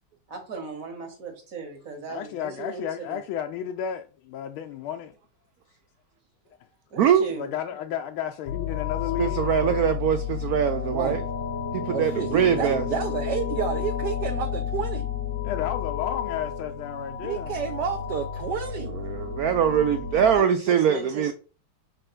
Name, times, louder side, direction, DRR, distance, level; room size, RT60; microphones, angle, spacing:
voice 1, 0.3-3.2 6.9-7.5 20.3-21.3, right 3 dB, 45° right, 1.8 m, -37 dB
voice 2, 2.1-5.1 7.3-9.9 15.4-17.6, left 9 dB, 85° left, 1.4 m, -33 dB
sound 1, 8.5-20.4, left 7 dB, 60° left, 1.1 m, -31 dB
voice 3, 9.2-11.2 11.7-12.8 19.0-21.3, right 8 dB, 85° right, 0.8 m, -22 dB
voice 4, 10.9-11.2 11.9-15.1 17.2-19.0, right 7 dB, 65° right, 1.1 m, -30 dB
5.6 x 3.4 x 5.7 m
omnidirectional pair, 2.2 m